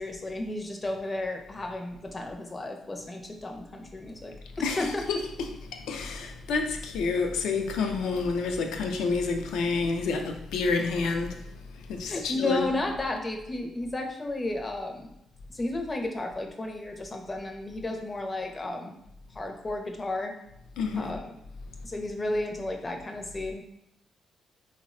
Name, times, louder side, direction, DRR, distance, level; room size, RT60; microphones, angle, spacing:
voice 1, 0.0-5.0 12.1-15.1 15.5-18.9 19.3-20.3 21.0-21.2 21.8-23.6, left 2 dB, 30° left, 0.5 m, -33 dB
voice 2, 4.6-12.8 20.8-21.2, left 4 dB, 85° left, 0.3 m, -29 dB
3.3 x 2.0 x 2.5 m
cardioid pair, 75°, 0 cm